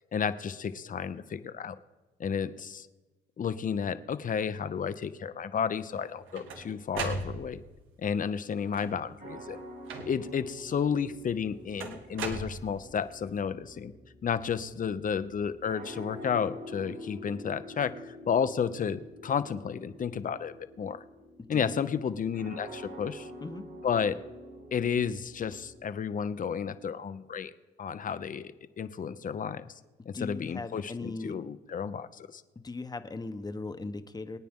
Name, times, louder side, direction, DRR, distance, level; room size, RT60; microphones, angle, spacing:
voice 1, 0.1-1.7 2.2-2.9 3.4-7.6 8.0-9.6 10.1-13.9 14.2-21.0 21.5-23.3 23.8-24.2 24.7-27.5 27.8-29.7 30.1-32.4, left 7 dB, 40° left, 12 dB, 0.8 m, -32 dB
sound 1, 5.9-7.8 8.6-9.2 9.9-10.4 11.8-13.1, right 4 dB, 90° right, 1.7 m, -38 dB
sound 2, 9.2-25.8, equal, 60° right, 4.2 m, -47 dB
voice 2, 30.1-31.4 32.6-34.4, left 3 dB, 20° left, 9 dB, 1.1 m, -38 dB
23.5 x 9.2 x 3.7 m, 1.2 s
cardioid pair, 90°, 20 cm